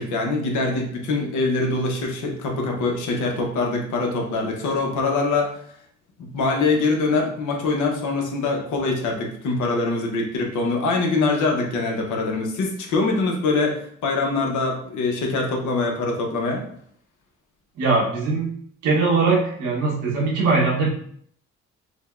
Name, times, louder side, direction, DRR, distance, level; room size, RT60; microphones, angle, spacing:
voice 1, 0.0-5.6 6.2-16.6, left 3 dB, 80° left, 1 dB, 0.9 m, -23 dB
voice 2, 17.8-18.6 18.8-20.9, right 4 dB, 90° right, -3 dB, 1.2 m, -21 dB
5.1 x 2.2 x 2.4 m, 0.64 s
cardioid pair, 90°, 30 cm